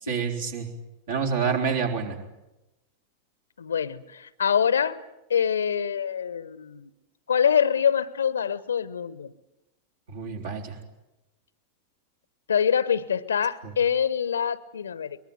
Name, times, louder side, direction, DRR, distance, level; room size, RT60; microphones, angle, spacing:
voice 1, 0.0-0.7 1.1-2.2 10.1-10.8 13.6-13.7, right 6 dB, 60° right, 2 dB, 4.0 m, -28 dB
voice 2, 3.6-5.0 5.3-6.9 7.3-9.3 12.5-15.2, left 7 dB, 70° left, 19 dB, 0.9 m, -25 dB
23.0 x 21.0 x 9.4 m, 0.97 s
figure-of-eight pair, 90°, 0 cm